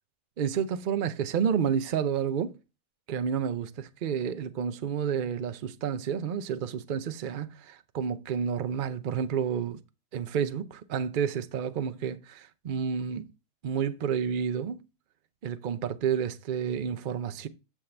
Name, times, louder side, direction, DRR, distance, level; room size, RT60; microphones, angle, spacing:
voice 1, 0.4-2.6 3.1-9.8 10.1-13.3 13.6-14.8 15.4-17.5, right 7 dB, 65° right, 0.5 m, -30 dB
7.2 x 6.3 x 3.3 m
omnidirectional pair, 1.7 m